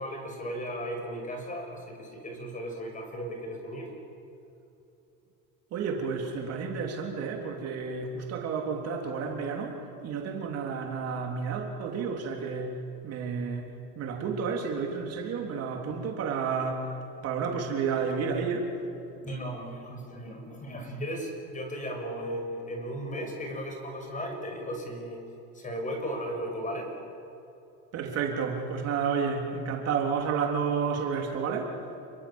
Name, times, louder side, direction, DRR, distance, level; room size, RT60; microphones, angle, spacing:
voice 1, 0.0-3.9 19.2-25.2 25.5-26.9, equal, 20° left, 3 dB, 6.4 m, -36 dB
voice 2, 5.7-12.8 13.0-17.0 17.2-18.7 27.9-31.8, right 5 dB, 45° right, 1 dB, 3.5 m, -31 dB
29.5 x 22.5 x 7.3 m, 2.9 s
supercardioid pair, 130°, 34 cm